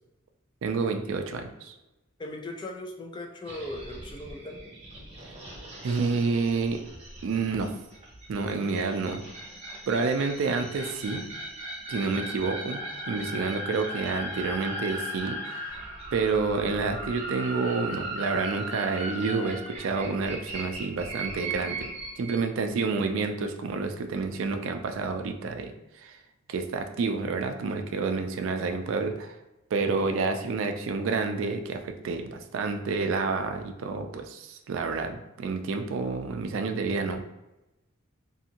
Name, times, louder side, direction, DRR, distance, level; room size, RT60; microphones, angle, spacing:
voice 1, 0.6-1.7 5.8-6.8 7.2-7.7 8.3-9.2 9.9-11.2 11.9-15.7 16.1-21.9 22.2-26.2 26.5-29.4 29.7-37.2, right 4 dB, 65° right, 6 dB, 0.3 m, -29 dB
voice 2, 2.2-4.6, left 1 dB, 25° left, 2 dB, 0.4 m, -38 dB
sound 1, 3.5-22.4, right 1 dB, 30° right, 0.7 m, -38 dB
2.6 x 2.5 x 2.8 m, 0.99 s
head